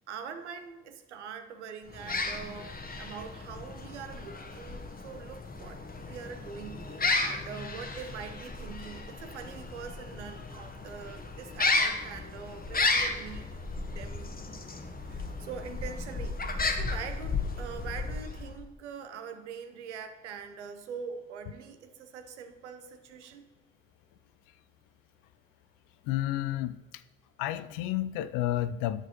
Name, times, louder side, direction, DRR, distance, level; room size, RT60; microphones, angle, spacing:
voice 1, 0.1-13.5 13.8-14.3 15.1-16.4 16.7-23.5, right 6 dB, 85° right, 8 dB, 0.7 m, -43 dB
sound 1, 1.9-18.6, left 3 dB, 25° left, 1.2 m, -34 dB
voice 2, 26.1-26.8 27.4-29.1, left 13 dB, 70° left, 14 dB, 0.5 m, -30 dB
11.5 x 7.5 x 3.0 m, 1.2 s
figure-of-eight pair, 40°, 34 cm